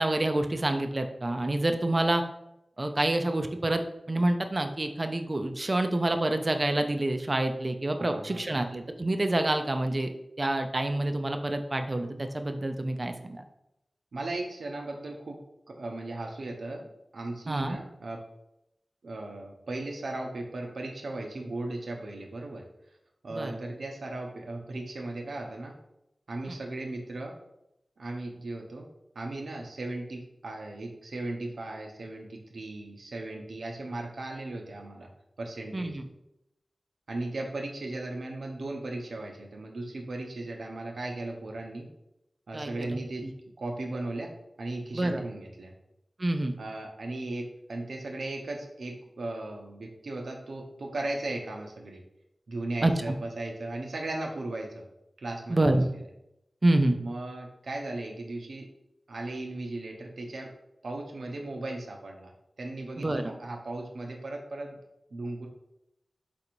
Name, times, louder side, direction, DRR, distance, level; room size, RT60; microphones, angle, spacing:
voice 1, 0.0-2.2 2.8-3.8 4.1-13.4 17.5-17.8 23.3-23.6 35.7-36.0 42.5-43.0 44.9-45.2 46.2-46.5 52.8-52.9 55.5-55.9 56.6-57.0 63.0-63.3, right 1 dB, 40° right, 6 dB, 0.4 m, -27 dB
voice 2, 8.0-8.7 14.1-15.4 15.7-18.2 19.0-22.6 23.2-25.7 26.3-27.4 28.0-28.9 29.1-35.1 35.4-36.0 37.1-41.9 42.5-43.2 43.6-44.3 44.6-45.7 46.6-52.0 52.5-54.9 55.2-56.1 57.0-58.7 59.1-60.5 60.8-62.3 62.6-64.8 65.1-65.5, right 2 dB, 85° right, 2 dB, 0.7 m, -37 dB
3.9 x 2.6 x 4.5 m, 0.84 s
cardioid pair, 50°, 0 cm